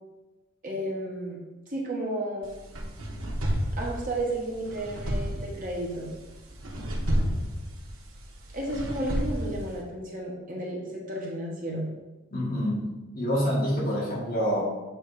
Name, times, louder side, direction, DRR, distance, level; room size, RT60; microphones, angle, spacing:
voice 1, 0.6-1.4 1.7-2.5 3.8-6.1 8.5-11.9, right 1 dB, 40° right, -3 dB, 1.4 m, -32 dB
sound 1, 2.4-9.8, equal, 80° right, 1.2 m, -32 dB
voice 2, 12.3-12.9 13.2-14.6, equal, 45° left, -5 dB, 1.9 m, -26 dB
7.8 x 3.6 x 4.8 m, 1.1 s
head